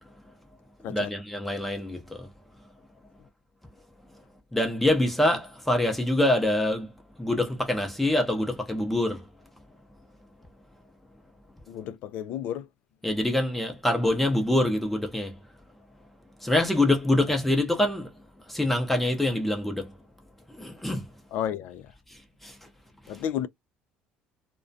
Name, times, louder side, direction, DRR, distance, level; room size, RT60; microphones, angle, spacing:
voice 1, 0.9-2.3 4.5-6.9 7.2-9.2 13.0-15.3 16.4-18.1 18.5-19.9 20.5-21.1 22.1-22.5, left 1 dB, 5° left, 0.6 m, -25 dB
voice 2, 11.7-12.7 17.3-17.4 21.3-21.9 23.1-23.5, left 10 dB, 65° left, 0.3 m, -32 dB
2.3 x 2.2 x 2.6 m
cardioid pair, 120°, 3 cm